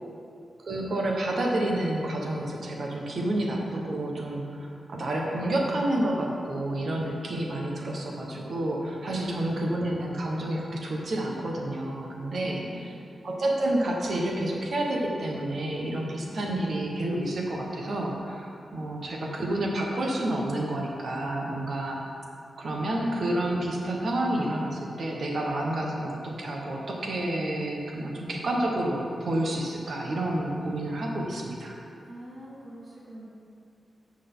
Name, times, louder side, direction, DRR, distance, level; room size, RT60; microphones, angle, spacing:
voice 1, 0.6-12.9 13.2-22.0 22.6-31.8, right 1 dB, 55° right, -1 dB, 1.3 m, -29 dB
voice 2, 9.0-9.4 12.4-13.2 32.1-33.3, right 1 dB, 40° right, -5 dB, 2.2 m, -45 dB
12.0 x 6.4 x 3.8 m, 2.6 s
wide cardioid pair, 135°, 0 cm